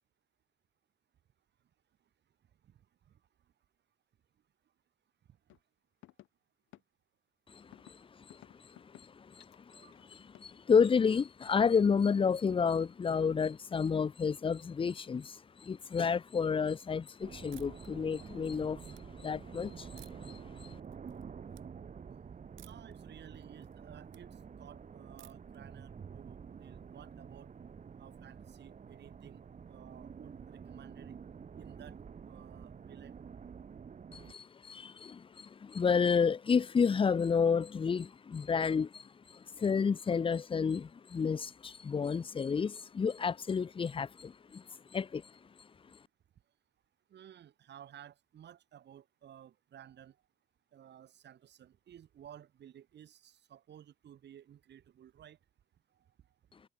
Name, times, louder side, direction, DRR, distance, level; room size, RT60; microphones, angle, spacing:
sound 1, 5.5-5.6 6.0-6.3 6.7-6.8 7.7-7.9 8.3-9.0 9.4-10.5, left 16 dB, 85° left, 1.1 m, -55 dB
voice 1, 7.5-9.9 10.4-20.7 34.1-44.6 44.9-45.2, left 6 dB, 25° left, 0.6 m, -31 dB
sound 2, 17.2-34.3, right 6 dB, 40° right, 1.4 m, -49 dB
sound 3, 17.5-17.9 18.3-19.0 20.0-20.4 20.8-21.2 21.5-21.7 22.6-22.9 23.3-24.2 25.2-25.6, right 14 dB, 85° right, 1.9 m, -58 dB
voice 2, 22.6-27.5 28.0-29.4 29.7-31.2 31.6-33.2 47.1-50.2 50.7-55.4, right 10 dB, 60° right, 1.5 m, -55 dB
cardioid pair, 90°, 20 cm